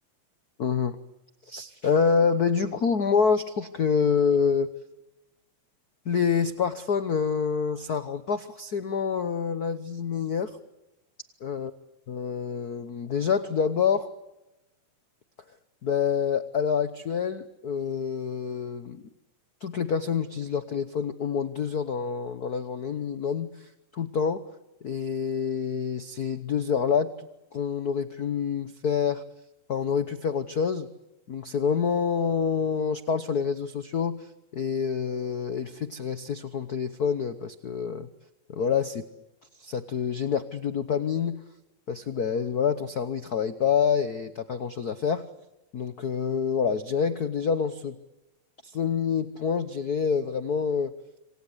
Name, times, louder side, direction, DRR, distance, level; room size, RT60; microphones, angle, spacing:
voice 1, 0.6-1.0 1.5-4.7 6.0-10.6 11.4-11.7 12.1-14.1 15.8-19.0 19.6-24.5 24.8-27.3 27.5-29.2 29.7-30.9 31.3-38.1 38.5-39.0 39.6-41.4 41.9-45.3 45.7-48.0 48.6-51.0, left 6 dB, 75° left, 11 dB, 0.8 m, -27 dB
27.0 x 26.5 x 8.0 m, 1.0 s
omnidirectional pair, 3.3 m